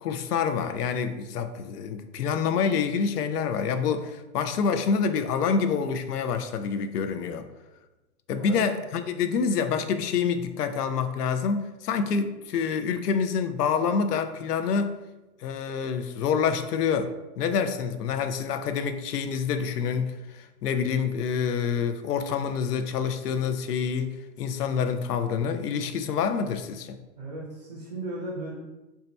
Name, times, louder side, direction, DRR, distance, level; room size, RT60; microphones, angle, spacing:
voice 1, 0.0-7.5 8.3-15.0 15.4-27.0, left 6 dB, 90° left, 9 dB, 0.6 m, -27 dB
voice 2, 27.2-28.6, right 2 dB, 30° right, -3 dB, 0.5 m, -36 dB
2.7 x 2.2 x 4.0 m, 1.1 s
hypercardioid pair, 165°, 45 cm